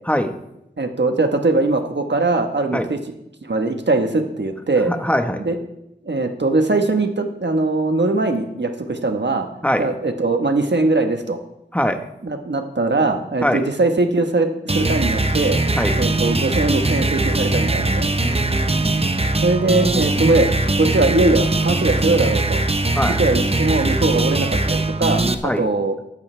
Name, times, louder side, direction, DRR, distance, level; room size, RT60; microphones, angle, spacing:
voice 1, 0.1-0.4 2.7-2.9 4.9-5.4 9.6-9.9 11.7-12.0 13.4-13.7 15.7-16.0 18.2-19.0 22.9-23.2 25.4-25.7, equal, 5° left, 6 dB, 1.3 m, -22 dB
voice 2, 0.8-3.0 3.4-4.9 5.4-5.6 6.0-9.5 9.8-11.4 12.2-15.6 16.0-18.1 19.4-20.5 20.8-22.6 23.1-25.9, right 2 dB, 75° right, 5 dB, 1.3 m, -20 dB
sound 1, 14.7-25.3, right 2 dB, 30° right, 0.8 m, -20 dB
14.0 x 13.5 x 3.4 m, 0.85 s
wide cardioid pair, 50°, 19 cm